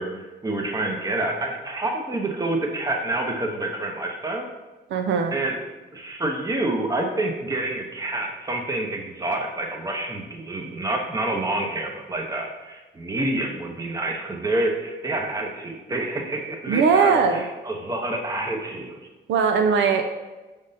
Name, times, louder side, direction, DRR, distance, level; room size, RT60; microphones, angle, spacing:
voice 1, 0.0-4.5 5.3-5.6 5.9-19.0, right 2 dB, 20° right, 2 dB, 0.7 m, -28 dB
voice 2, 4.9-5.3 16.7-17.4 19.3-20.0, right 5 dB, 70° right, 5 dB, 0.4 m, -19 dB
5.1 x 3.5 x 2.7 m, 1.2 s
cardioid pair, 90°, 20 cm